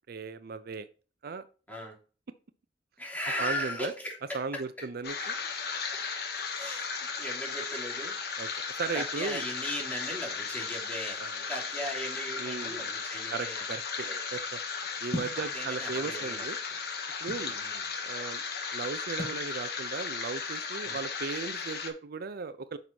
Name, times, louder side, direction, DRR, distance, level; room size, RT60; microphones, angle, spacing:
voice 1, 0.1-0.9 1.2-1.4 3.4-3.9 4.3-5.3 8.4-9.4 11.2-11.4 12.4-12.9 13.3-14.6 15.0-16.6 17.2-17.6 18.0-18.4 18.7-22.8, right 4 dB, 60° right, 12 dB, 0.5 m, -37 dB
voice 2, 3.0-4.9 5.2-5.3 6.5-8.1 8.9-13.6 14.0-14.2 15.4-16.5 17.4-17.8 20.8-21.0, equal, 10° left, -2 dB, 3.0 m, -38 dB
sound 1, 5.0-21.9, left 5 dB, 65° left, 1.5 m, -36 dB
sound 2, 15.1-15.5 16.3-17.5 19.2-19.5, left 1 dB, 40° left, 1.9 m, -37 dB
9.1 x 6.1 x 2.8 m, 0.37 s
head